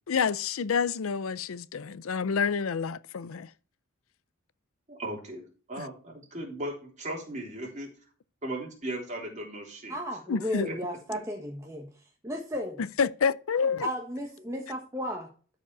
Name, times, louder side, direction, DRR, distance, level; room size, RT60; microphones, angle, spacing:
voice 1, 0.1-3.5 5.8-5.9 10.3-10.7 13.0-13.9, left 6 dB, 85° left, 0.5 m, -28 dB
voice 2, 4.9-7.9 8.4-9.9 10.6-10.7 11.1-11.2, right 1 dB, 35° right, 3.4 m, -37 dB
voice 3, 9.9-12.8 13.8-15.3, equal, 15° right, 1.2 m, -34 dB
13.0 x 5.1 x 4.7 m
head